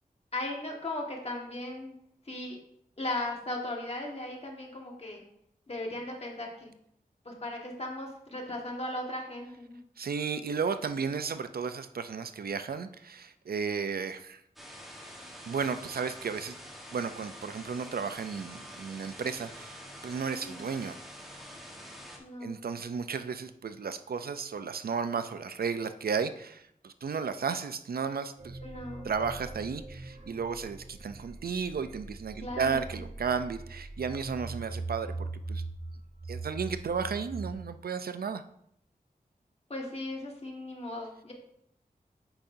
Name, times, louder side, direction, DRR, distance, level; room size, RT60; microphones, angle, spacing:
voice 1, 0.3-1.9 2.2-2.6 3.0-5.2 5.7-6.7 7.2-9.8 20.4-20.6 22.2-22.6 28.6-29.1 32.4-33.1 39.7-41.3, left 1 dB, 40° left, -1 dB, 1.7 m, -37 dB
voice 2, 10.0-14.4 15.5-16.6 16.9-19.8 20.0-21.0 22.4-28.6 29.0-35.1 35.5-35.6 36.3-38.4, right 5 dB, 80° right, 10 dB, 0.5 m, -33 dB
sound 1, 14.6-22.2, equal, ahead, 1.3 m, -46 dB
sound 2, 28.4-37.5, right 3 dB, 55° right, 1.0 m, -41 dB
8.7 x 5.7 x 2.7 m, 0.71 s
wide cardioid pair, 85°, 15 cm